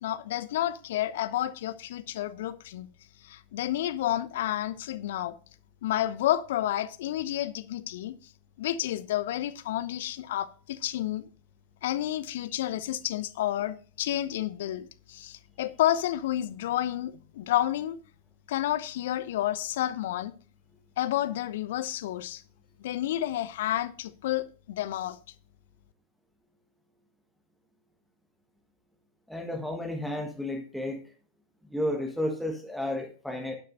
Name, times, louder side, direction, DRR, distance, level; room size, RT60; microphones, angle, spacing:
voice 1, 0.0-2.9 3.2-5.4 5.8-8.1 8.6-11.3 11.8-18.0 18.5-20.3 21.0-22.4 22.8-25.2, left 13 dB, 55° left, 0.8 m, -30 dB
voice 2, 29.3-31.0 31.7-33.5, left 1 dB, ahead, 1.6 m, -32 dB
11.5 x 10.5 x 2.6 m
figure-of-eight pair, 90°, 0 cm